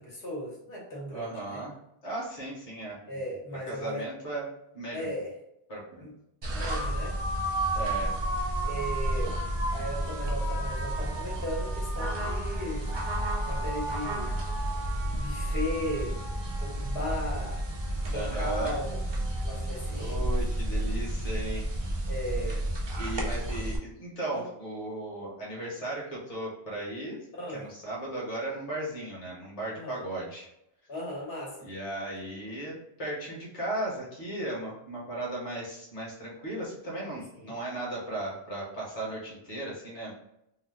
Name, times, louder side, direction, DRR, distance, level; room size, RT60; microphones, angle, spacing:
voice 1, 0.0-1.6 3.0-4.1 4.9-5.3 6.0-6.1 6.5-7.2 8.6-9.4 9.7-12.9 13.4-14.3 15.2-16.2 16.6-17.6 18.1-19.0 19.3-20.3 22.1-22.6 24.3-24.4 27.3-27.6 29.7-30.0 30.9-31.6 37.3-37.6, equal, 65° left, -4 dB, 1.2 m, -36 dB
voice 2, 1.1-1.8 2.0-3.2 3.7-4.5 4.7-5.1 5.7-6.1 7.8-8.2 11.0-11.1 18.1-18.8 19.9-21.7 22.5-22.6 23.0-27.2 27.5-30.5 31.6-40.1, right 1 dB, 40° left, -5 dB, 1.0 m, -36 dB
sound 1, 6.4-23.8, right 1 dB, 40° right, 0.4 m, -31 dB
2.8 x 2.1 x 3.3 m, 0.81 s
omnidirectional pair, 1.1 m